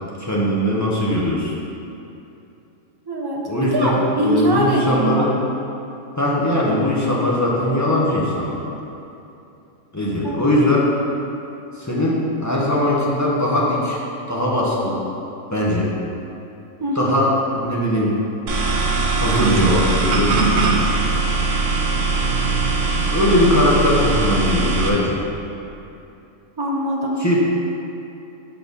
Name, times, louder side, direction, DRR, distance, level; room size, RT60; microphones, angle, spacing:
voice 1, 0.2-1.5 3.5-5.3 6.2-8.6 9.9-11.0 11.8-14.0 14.3-15.0 15.5-15.9 16.9-18.2 19.1-20.3 22.9-25.2 27.2-27.5, left 1 dB, 15° left, -6 dB, 0.9 m, -20 dB
voice 2, 3.1-5.3 10.2-10.4 16.8-17.1 26.6-27.2, right 1 dB, 25° right, -2 dB, 0.6 m, -22 dB
sound 1, 18.5-24.9, right 3 dB, 65° right, 1.1 m, -20 dB
6.8 x 4.2 x 5.3 m, 2.8 s
omnidirectional pair, 1.5 m